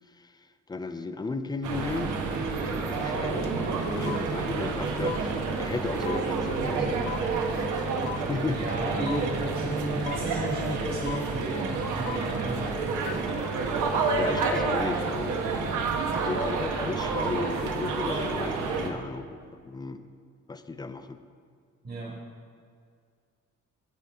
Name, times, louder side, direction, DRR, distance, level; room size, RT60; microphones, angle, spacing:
voice 1, 0.7-2.2 2.6-7.2 8.3-8.7 14.2-15.4 16.1-19.4 19.6-20.1 20.5-21.2, left 3 dB, 15° left, 10 dB, 0.4 m, -34 dB
sound 1, 1.6-18.9, right 3 dB, 80° right, 1.0 m, -29 dB
sound 2, 2.3-19.2, right 8 dB, 60° right, 0.7 m, -41 dB
sound 3, 3.4-3.5 3.7-14.9, left 11 dB, 85° left, 0.6 m, -41 dB
voice 2, 8.5-12.8 21.8-22.1, right 1 dB, 30° right, -3 dB, 1.5 m, -33 dB
10.0 x 7.0 x 3.6 m, 2.2 s
cardioid pair, 90°, 30 cm